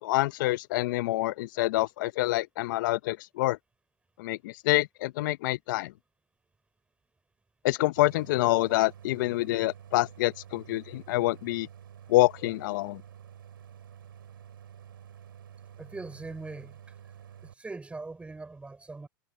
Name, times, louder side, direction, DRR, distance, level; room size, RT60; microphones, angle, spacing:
voice 1, 0.0-3.6 4.2-5.9 7.6-11.7 12.1-13.0, left 18 dB, 65° left, 0.6 m, -27 dB
Idling, 8.0-17.5, right 9 dB, 90° right, 7.5 m, -49 dB
voice 2, 15.8-17.1 17.4-19.1, right 3 dB, 10° right, 5.9 m, -41 dB
hypercardioid pair, 115°, 11 cm